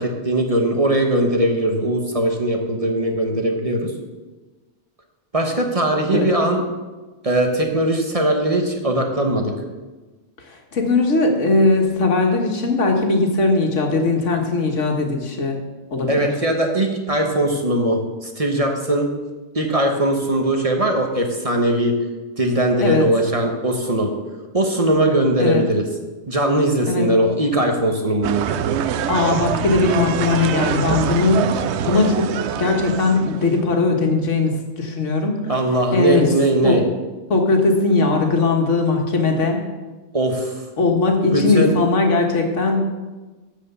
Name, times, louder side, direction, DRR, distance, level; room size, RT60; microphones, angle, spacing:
voice 1, 0.0-3.9 5.3-6.6 7.2-9.5 16.1-19.1 19.5-22.0 22.4-24.1 24.5-25.8 26.3-28.4 35.5-36.8 40.1-40.5 41.3-41.8, right 1 dB, 30° right, 3 dB, 1.2 m, -20 dB
voice 2, 10.4-15.6 15.9-16.3 22.8-23.1 25.4-25.6 26.9-27.0 29.1-31.5 31.8-32.3 32.6-35.4 35.9-36.3 36.6-36.8 37.3-39.6 40.8-42.8, left 3 dB, 85° left, 2 dB, 1.8 m, -19 dB
sound 1, 28.2-33.6, right 9 dB, 70° right, 0.8 m, -24 dB
13.5 x 5.0 x 6.8 m, 1.2 s
omnidirectional pair, 1.2 m